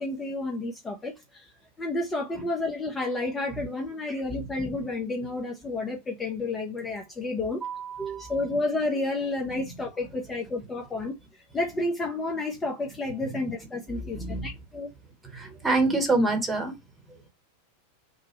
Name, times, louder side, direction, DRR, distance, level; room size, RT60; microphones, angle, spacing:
voice 1, 0.0-1.5 1.8-7.6 8.0-11.2 11.5-14.9, left 2 dB, 15° left, 0.6 m, -31 dB
voice 2, 7.6-8.3 13.3-13.4 13.9-14.5 15.2-16.7, right 2 dB, 10° right, 1.0 m, -27 dB
3.0 x 2.1 x 2.9 m
figure-of-eight pair, 90°, 0 cm